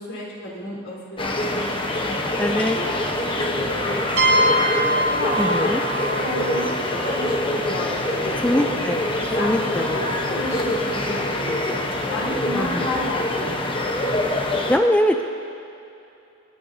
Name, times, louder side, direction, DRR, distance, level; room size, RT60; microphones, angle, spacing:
voice 1, 0.0-3.4 3.8-4.7 5.1-8.7 9.2-13.7, left 1 dB, 65° left, -4 dB, 3.5 m, -32 dB
sound 1, 1.2-14.8, left 1 dB, 25° left, 1.0 m, -25 dB
voice 2, 2.4-2.8 5.4-5.8 8.4-9.0 9.4-9.9 12.5-12.9 14.7-15.3, equal, 5° left, 5 dB, 0.4 m, -22 dB
sound 2, 2.4-11.6, right 3 dB, 45° right, 0.7 m, -41 dB
sound 3, 4.2-7.8, right 1 dB, 80° right, 1.7 m, -24 dB
28.5 x 12.0 x 2.7 m, 2.7 s
head